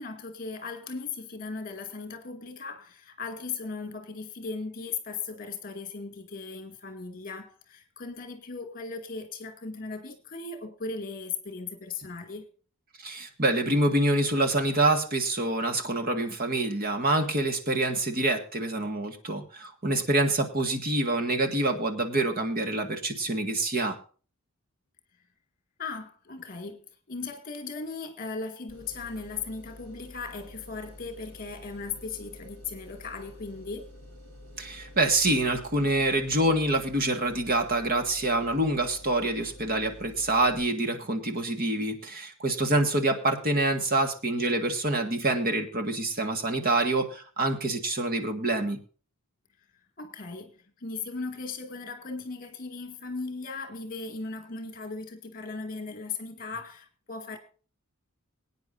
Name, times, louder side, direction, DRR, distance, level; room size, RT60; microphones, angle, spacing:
voice 1, 0.0-12.5 25.8-33.9 50.0-57.4, left 4 dB, 40° left, 2.1 m, -37 dB
voice 2, 13.0-24.0 34.6-48.8, right 2 dB, 40° right, 1.8 m, -26 dB
sound 1, 28.7-40.6, left 1 dB, 85° right, 4.8 m, -49 dB
23.0 x 9.4 x 2.6 m
head